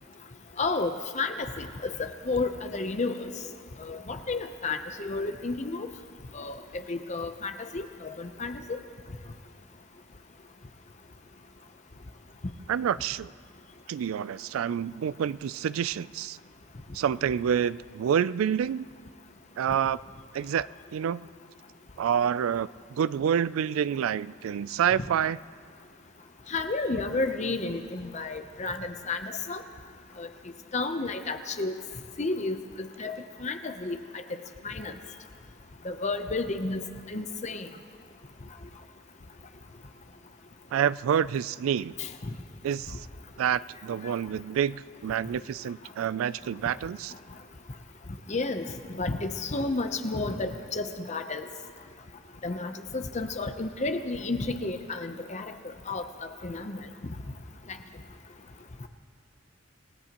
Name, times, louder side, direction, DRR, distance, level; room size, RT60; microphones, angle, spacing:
voice 1, 0.6-3.3 3.8-5.9 6.3-8.8 26.5-29.6 30.2-30.3 30.7-31.7 32.2-34.0 34.3-34.4 34.6-34.9 35.8-36.8 37.1-37.7 42.0-42.1 48.3-48.7 48.9-51.5 52.4-55.5 55.9-56.0 56.4-56.8, left 3 dB, 35° left, 7 dB, 0.7 m, -31 dB
voice 2, 12.7-13.3 13.9-16.4 16.9-18.9 19.6-20.0 20.3-21.2 22.0-25.4 40.7-41.9 42.6-43.1 43.4-47.1, right 8 dB, 85° right, 17 dB, 0.3 m, -28 dB
27.0 x 18.0 x 3.0 m, 2.1 s
head